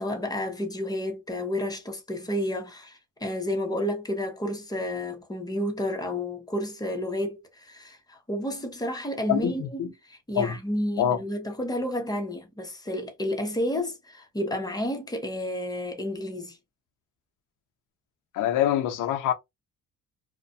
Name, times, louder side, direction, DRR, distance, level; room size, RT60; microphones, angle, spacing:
voice 1, 0.0-16.6, left 1 dB, 15° left, 0.8 m, -31 dB
voice 2, 9.3-9.9 10.3-10.6 11.0-11.2 18.3-19.3, left 10 dB, 90° left, 0.6 m, -25 dB
2.4 x 2.2 x 2.6 m
cardioid pair, 90°, 30 cm